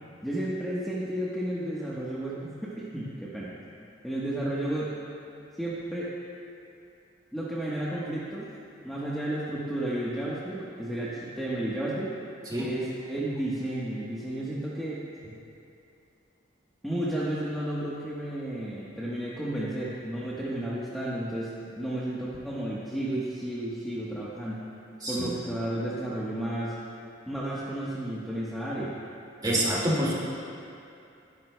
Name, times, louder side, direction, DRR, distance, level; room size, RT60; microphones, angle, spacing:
voice 1, 0.2-3.5 4.0-5.0 5.6-6.1 7.3-8.5 8.8-12.2 12.6-15.1 16.8-24.6 25.1-26.8 27.3-28.9, right 1 dB, ahead, -9 dB, 1.1 m, -32 dB
voice 2, 29.4-30.1, right 1 dB, 20° right, -5 dB, 2.0 m, -26 dB
18.0 x 11.0 x 2.2 m, 2.6 s
head